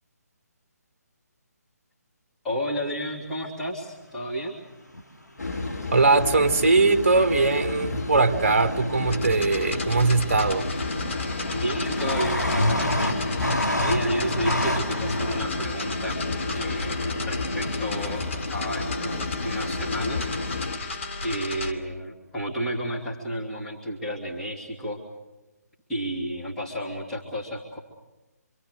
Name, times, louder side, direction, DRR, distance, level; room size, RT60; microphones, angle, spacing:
voice 1, 2.4-4.6 11.5-13.4 13.8-16.2 16.5-20.2 21.2-25.0 25.9-27.8, equal, 5° left, 2.9 m, -31 dB
sound 1, 4.9-5.0 6.6-7.3 9.6-9.7 9.9-10.3 10.6-15.5, left 1 dB, 85° left, 2.3 m, -28 dB
sound 2, 5.4-20.8, left 3 dB, 70° left, 2.1 m, -31 dB
voice 2, 5.9-10.7, right 3 dB, 45° right, 1.5 m, -21 dB
sound 3, 9.0-21.7, left 3 dB, 50° left, 2.6 m, -35 dB
26.5 x 26.0 x 6.6 m
figure-of-eight pair, 145°, 9 cm